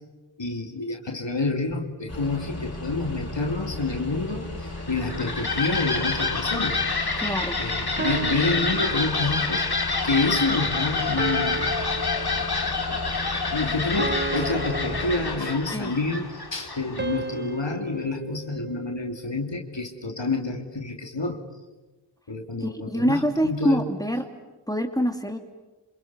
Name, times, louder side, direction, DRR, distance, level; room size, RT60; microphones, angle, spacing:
voice 1, 0.4-6.8 7.6-9.6 10.0-11.8 12.9-13.0 13.5-21.4 22.3-23.9, left 3 dB, 90° left, 3 dB, 2.7 m, -28 dB
sound 1, 2.1-15.4, left 2 dB, 35° left, 6.2 m, -36 dB
sound 2, 4.8-17.3, left 4 dB, 60° left, 2.3 m, -28 dB
voice 2, 7.2-7.6 15.7-15.9 22.6-24.2 24.7-25.4, equal, 10° left, 5 dB, 2.7 m, -25 dB
sound 3, 8.0-9.5 11.2-12.8 14.0-15.9 17.0-19.3, right 3 dB, 25° right, 1.0 m, -34 dB
28.0 x 27.5 x 6.9 m, 1.2 s
wide cardioid pair, 40°, 43 cm